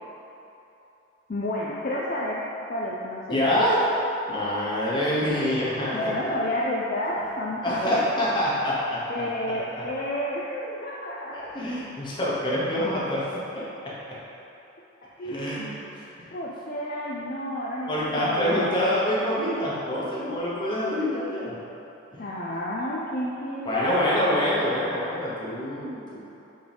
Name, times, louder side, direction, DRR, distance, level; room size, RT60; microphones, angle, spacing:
voice 1, 1.3-2.4 2.7-3.4 5.9-8.0 9.1-11.4 15.2-15.4 16.3-18.7 22.2-24.1, left 1 dB, 45° left, -4 dB, 0.4 m, -30 dB
voice 2, 3.3-3.8 4.3-6.0 7.6-9.0 9.8-9.9 10.4-10.7 11.3-13.2 13.5-13.9 15.2-16.3 17.9-21.6 22.1-22.2 23.6-26.2, left 1 dB, 25° left, -7 dB, 1.1 m, -26 dB
7.7 x 3.8 x 3.5 m, 3.0 s
head